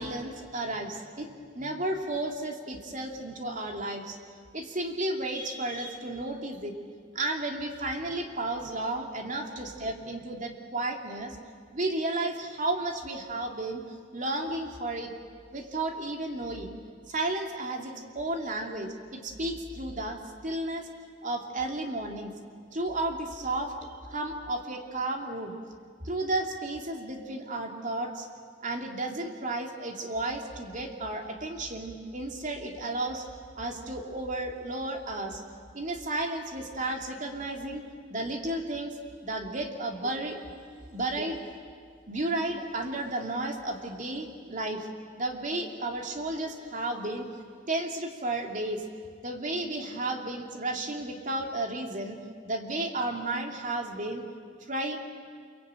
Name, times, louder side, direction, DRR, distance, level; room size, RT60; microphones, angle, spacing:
voice 1, 0.0-4.2 4.5-6.7 7.1-11.4 11.7-15.1 15.5-16.7 17.1-20.9 21.2-22.3 22.7-25.5 26.0-28.3 28.6-33.2 33.6-35.4 35.7-37.8 38.1-39.0 39.2-40.4 40.9-41.4 42.1-44.9 45.2-47.3 47.7-48.8 49.2-52.2 52.4-54.2 54.6-55.0, right 2 dB, 45° right, 3 dB, 2.9 m, -33 dB
27.5 x 23.5 x 9.0 m, 2.1 s
head